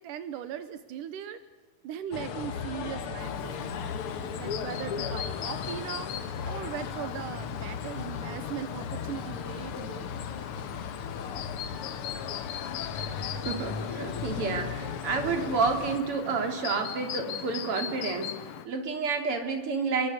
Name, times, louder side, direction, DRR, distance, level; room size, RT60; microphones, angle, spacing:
voice 1, 0.0-1.4 1.8-6.1 6.5-10.4, right 10 dB, 85° right, 12 dB, 2.6 m, -39 dB
sound 1, 2.1-16.0, left 6 dB, 50° left, 2.0 m, -36 dB
Chirp tweet, 3.2-18.7, left 11 dB, 80° left, 2.6 m, -40 dB
voice 2, 13.3-18.4 18.7-20.1, right 4 dB, 45° right, 6 dB, 3.7 m, -30 dB
28.0 x 23.0 x 8.0 m, 1.2 s
omnidirectional pair, 3.7 m